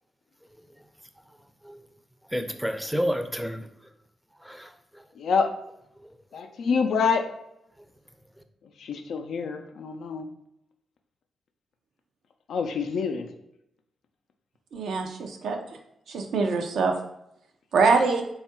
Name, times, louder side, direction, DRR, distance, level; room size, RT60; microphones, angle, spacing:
voice 1, 2.3-3.9 4.4-5.0 6.0-6.1, equal, ahead, 7 dB, 0.5 m, -31 dB
voice 2, 5.2-5.6 6.3-7.3 8.8-10.3 12.5-13.3, left 5 dB, 75° left, 6 dB, 0.4 m, -26 dB
voice 3, 14.7-15.6 16.1-16.9 17.7-18.2, right 4 dB, 80° right, 3 dB, 0.5 m, -23 dB
3.5 x 2.4 x 4.2 m, 0.79 s
supercardioid pair, 55°, 0 cm